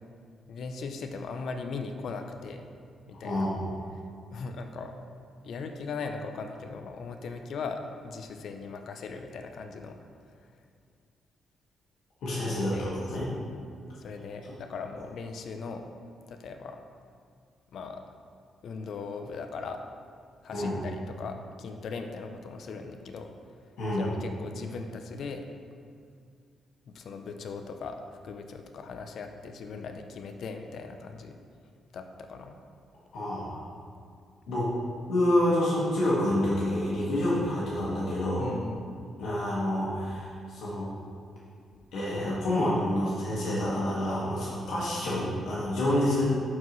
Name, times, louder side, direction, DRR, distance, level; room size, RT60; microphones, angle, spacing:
voice 1, 0.5-2.6 3.1-3.5 4.3-4.9 5.4-10.0 12.7-12.9 13.2-13.4 14.0-15.9 16.3-16.8 17.7-18.0 18.6-19.8 20.4-23.3 23.6-25.5 26.9-31.4 31.9-32.6 38.4-38.8, left 4 dB, 65° left, 5 dB, 0.6 m, -39 dB
voice 2, 3.2-3.7 12.2-13.3 20.5-20.8 23.8-24.1 33.1-33.6 34.5-34.7 35.1-38.6 39.2-40.9 41.9-46.3, left 1 dB, 80° left, -8 dB, 1.9 m, -28 dB
11.0 x 4.7 x 3.2 m, 2.3 s
cardioid pair, 105°, 0 cm